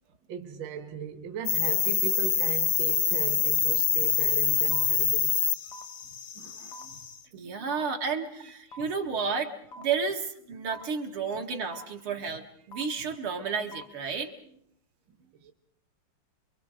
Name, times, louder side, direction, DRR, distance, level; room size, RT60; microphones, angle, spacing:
voice 1, 0.3-5.4 6.4-7.0 8.7-8.9 15.4-15.5, right 6 dB, 60° right, 2.0 m, -38 dB
sound 1, 1.4-7.2, left 7 dB, 50° left, 1.1 m, -26 dB
sound 2, 4.7-4.8 5.7-5.8 6.7-6.8 7.7-7.8 8.7-8.8 9.7-9.8 10.7-10.8 11.7-11.8 12.7-12.8 13.7-13.8, equal, 85° left, 2.5 m, -44 dB
voice 2, 7.3-14.6, right 5 dB, 75° right, 2.8 m, -32 dB
28.5 x 23.5 x 5.0 m
omnidirectional pair, 2.4 m